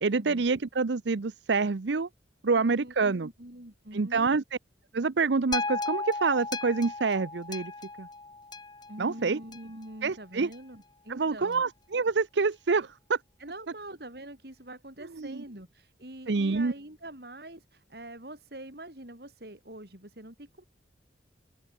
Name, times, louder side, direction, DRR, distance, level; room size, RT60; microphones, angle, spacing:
voice 1, 0.0-2.1 2.4-3.3 3.9-4.4 4.9-7.7 8.0-8.1 9.0-9.4 10.0-10.5 11.1-13.2 15.2-15.4 16.3-16.7, right 4 dB, 80° right, 0.7 m, -27 dB
voice 2, 2.5-4.3 8.9-11.6 13.4-20.6, right 1 dB, 60° right, 4.4 m, -45 dB
sound 1, 5.5-9.9 10.5-10.6, left 3 dB, 25° left, 1.6 m, -36 dB
open air
head